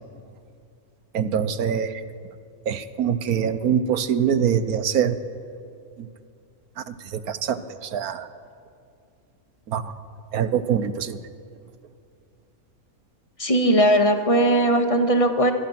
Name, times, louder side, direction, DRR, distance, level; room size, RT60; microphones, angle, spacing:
voice 1, 1.1-2.0 2.7-5.2 6.0-6.1 6.8-8.3 9.7-9.9 10.3-11.2, right 8 dB, 90° right, 12 dB, 1.5 m, -24 dB
voice 2, 13.4-15.5, right 1 dB, 25° left, 5 dB, 1.9 m, -19 dB
25.0 x 22.0 x 6.0 m, 2.4 s
omnidirectional pair, 1.5 m